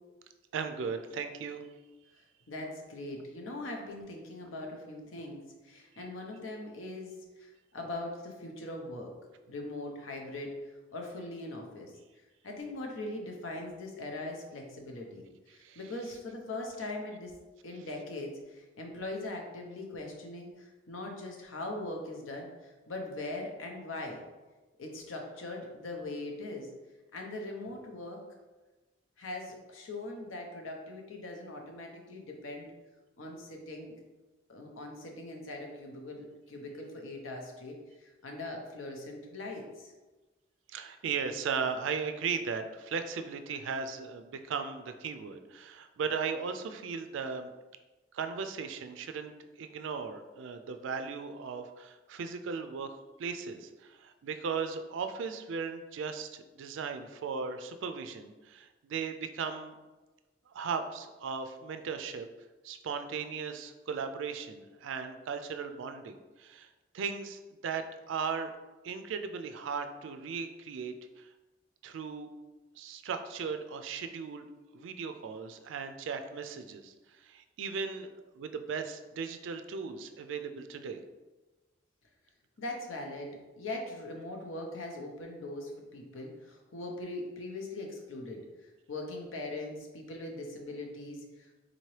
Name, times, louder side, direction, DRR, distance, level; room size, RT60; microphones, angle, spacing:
voice 1, 0.5-1.7 15.5-15.8 40.7-47.5 48.1-52.9 53.2-59.7 60.5-62.3 62.6-66.7 66.9-68.5 68.8-71.3 71.8-72.3 72.8-74.5 74.7-78.1 78.3-81.0, right 5 dB, 75° right, 8 dB, 0.3 m, -37 dB
voice 2, 2.5-9.1 9.5-11.9 12.4-15.2 15.5-17.3 17.6-24.2 24.8-26.7 27.1-28.2 29.2-32.7 33.2-34.0 34.5-39.9 82.6-91.6, left 2 dB, 85° left, 1 dB, 0.7 m, -41 dB
3.9 x 2.8 x 3.1 m, 1.2 s
head